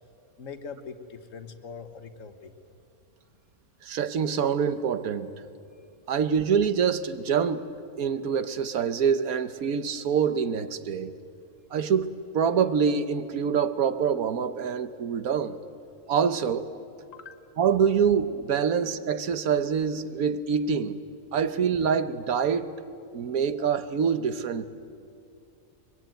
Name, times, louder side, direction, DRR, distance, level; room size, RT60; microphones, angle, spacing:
voice 1, 0.4-2.5 17.1-17.4, left 5 dB, 60° left, 8 dB, 1.6 m, -42 dB
voice 2, 3.8-5.3 6.1-7.7 8.0-11.1 11.7-15.6 16.1-16.7 17.6-21.0 21.3-22.7 23.1-24.7, right 7 dB, 80° right, 12 dB, 1.4 m, -25 dB
23.5 x 22.5 x 9.1 m, 2.5 s
omnidirectional pair, 1.5 m